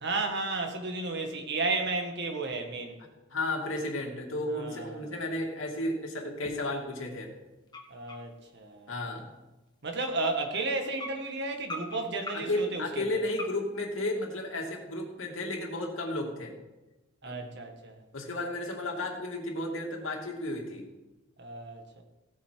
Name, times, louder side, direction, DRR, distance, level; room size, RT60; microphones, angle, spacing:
voice 1, 0.0-3.0 4.5-5.1 7.9-8.9 9.8-13.2 17.2-18.0 21.4-22.0, right 3 dB, 60° right, 1.9 m, -33 dB
voice 2, 3.3-7.3 8.9-9.3 12.3-16.5 17.2-17.5 18.1-20.8, left 1 dB, 85° left, 2.6 m, -33 dB
sound 1, 5.3-5.4 5.8-5.9 6.4-6.7 7.1-7.2 7.7-8.6 9.2-9.3 9.9-10.0 10.2-10.5 11.0-12.6 13.3-13.7, left 1 dB, 20° left, 1.5 m, -42 dB
16.5 x 8.4 x 4.8 m
head